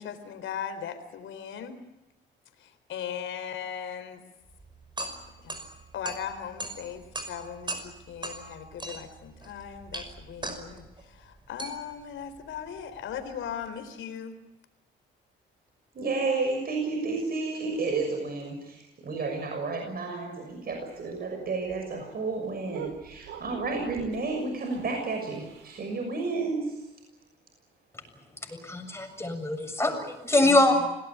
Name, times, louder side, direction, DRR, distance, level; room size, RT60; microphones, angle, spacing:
voice 1, 0.0-1.8 2.6-4.2 5.4-5.7 5.9-14.4, left 8 dB, 80° left, 9 dB, 4.0 m, -38 dB
sound 1, 4.5-13.6, right 2 dB, 25° right, 5.6 m, -40 dB
voice 2, 15.9-26.9, right 3 dB, 50° right, 3 dB, 6.4 m, -31 dB
sound 2, 20.5-26.1, right 7 dB, 90° right, 6.0 m, -46 dB
voice 3, 28.5-30.9, left 1 dB, 15° left, 5 dB, 7.2 m, -24 dB
26.5 x 18.5 x 9.4 m, 0.99 s
cardioid pair, 90°, 20 cm